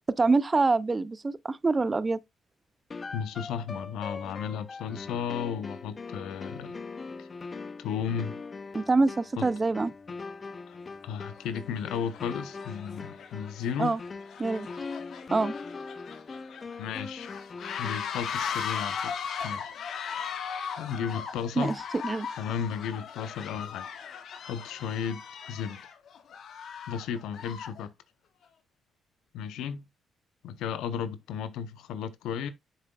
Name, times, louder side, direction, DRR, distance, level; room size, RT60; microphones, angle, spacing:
voice 1, 0.1-2.2 8.7-9.9 13.8-14.0 14.4-14.7 15.3-15.5 21.6-21.8 22.0-22.3, right 3 dB, 25° right, 0.4 m, -25 dB
sound 1, 2.9-18.2, left 4 dB, 35° left, 0.5 m, -41 dB
voice 2, 3.1-6.8 7.2-7.3 7.8-8.4 9.4-9.5 10.7-10.8 11.0-14.0 16.8-17.3 17.8-19.7 20.8-21.7 22.4-23.9 24.4-25.2 25.5-25.8 26.9-27.9 29.3-29.8 30.4-32.5, left 7 dB, 85° left, 0.7 m, -34 dB
sound 2, 10.5-10.6 11.3-11.5 11.9-27.8, left 7 dB, 65° left, 1.1 m, -38 dB
7.5 x 6.7 x 2.3 m
cardioid pair, 90°, 0 cm